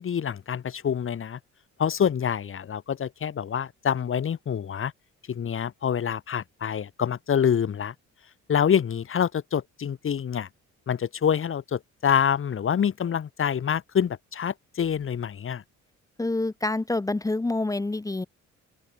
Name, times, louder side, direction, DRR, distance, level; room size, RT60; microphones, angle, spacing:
voice 1, 0.0-1.4 1.8-4.9 5.3-7.9 8.5-10.5 10.9-15.6, left 8 dB, 45° left, 1.3 m, -26 dB
voice 2, 16.2-18.3, left 2 dB, 10° left, 0.6 m, -27 dB
open air
cardioid pair, 90°, 30 cm